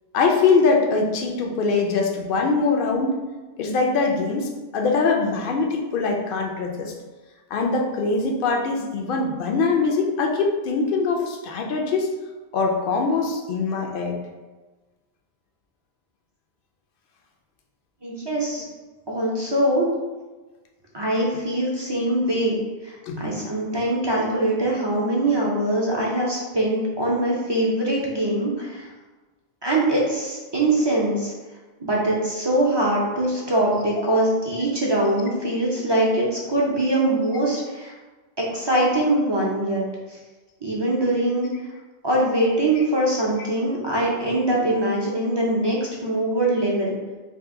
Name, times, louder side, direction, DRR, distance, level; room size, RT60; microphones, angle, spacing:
voice 1, 0.1-3.2 3.6-6.9 7.5-12.1 12.5-14.2 23.1-23.2 42.8-42.9, left 4 dB, 60° left, 1 dB, 0.7 m, -22 dB
voice 2, 18.0-18.6 19.1-19.9 20.9-28.9 29.6-31.3 31.8-37.9 38.4-39.8 40.1-40.2 40.6-41.5 42.0-46.9, right 1 dB, 35° right, -4 dB, 0.4 m, -23 dB
2.8 x 2.6 x 3.6 m, 1.3 s
omnidirectional pair, 1.1 m